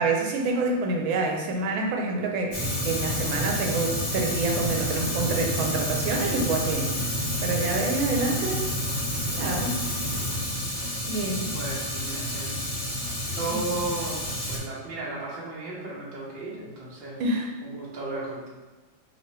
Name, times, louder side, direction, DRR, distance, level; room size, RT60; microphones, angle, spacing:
voice 1, 0.0-6.9 7.4-8.7 9.3-9.8 11.1-11.5 13.5-13.8 17.2-17.5, right 3 dB, 85° right, 1 dB, 1.4 m, -27 dB
Fire, 2.5-14.6, equal, 30° left, 0.6 m, -29 dB
voice 2, 11.5-12.6 13.3-17.2 17.6-18.5, right 2 dB, 40° right, -5 dB, 0.9 m, -35 dB
3.2 x 3.1 x 4.4 m, 1.3 s
omnidirectional pair, 2.1 m